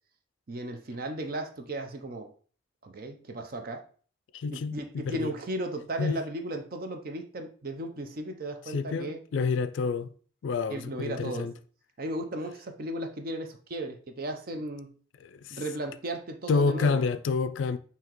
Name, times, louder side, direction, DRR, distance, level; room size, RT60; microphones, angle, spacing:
voice 1, 0.5-2.3 2.8-3.9 4.5-9.2 10.7-11.5 12.0-14.9 15.5-17.0, right 1 dB, 50° right, 0.6 m, -35 dB
voice 2, 4.3-5.3 6.0-6.2 8.7-10.1 10.4-11.5 15.2-15.6 16.5-17.8, left 4 dB, 75° left, 0.3 m, -28 dB
5.7 x 2.8 x 3.0 m
head